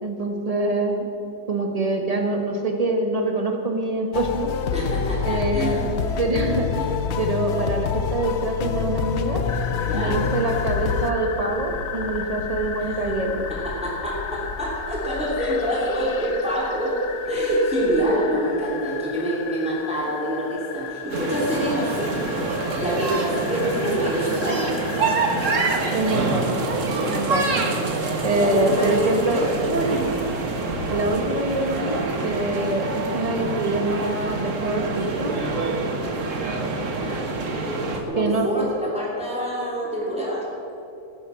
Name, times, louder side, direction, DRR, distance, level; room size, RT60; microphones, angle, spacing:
voice 1, 0.0-1.1 1.5-4.5 5.2-5.8 6.2-9.4 9.9-13.4 25.9-26.5 27.0-27.5 28.2-29.4 30.9-35.4 38.1-38.5, right 2 dB, 25° right, 2 dB, 1.5 m, -25 dB
sound 1, 4.1-11.1, left 6 dB, 60° left, 0.8 m, -26 dB
voice 2, 4.7-5.8 9.8-10.2 12.8-13.0 13.5-17.0 17.3-22.5 22.7-24.8 28.3-29.5 36.8-40.5, equal, 5° right, -5 dB, 3.0 m, -26 dB
sound 2, 9.5-25.8, left 6 dB, 85° left, 1.4 m, -35 dB
sound 3, 21.1-38.0, right 3 dB, 55° right, 1.7 m, -26 dB
17.5 x 10.5 x 5.8 m, 2.9 s
omnidirectional pair, 1.6 m